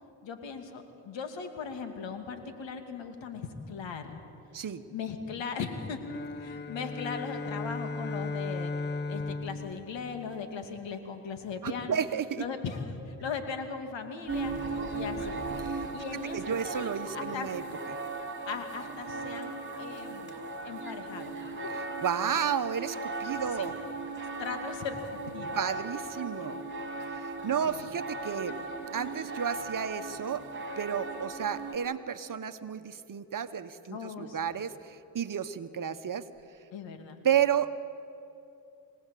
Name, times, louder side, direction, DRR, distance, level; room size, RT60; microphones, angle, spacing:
voice 1, 0.2-4.2 4.9-6.0 6.4-8.7 9.1-12.0 12.4-15.4 15.9-17.5 18.5-21.4 21.6-21.7 23.5-23.7 24.4-25.6 27.6-27.9 33.9-34.6 36.7-37.2, left 5 dB, 70° left, 6 dB, 2.6 m, -38 dB
sound 1, 6.0-10.7, left 3 dB, 20° left, 1.2 m, -36 dB
voice 2, 11.6-12.4 15.6-15.9 16.3-17.6 17.9-18.0 22.0-23.7 25.5-26.6 27.1-28.5 28.9-30.4 30.8-36.2 37.2-37.8, right 8 dB, 45° right, 11 dB, 1.2 m, -32 dB
sound 2, 14.3-31.8, right 3 dB, 25° right, 3.6 m, -37 dB
25.5 x 18.0 x 8.5 m, 2.7 s
supercardioid pair, 55°, 46 cm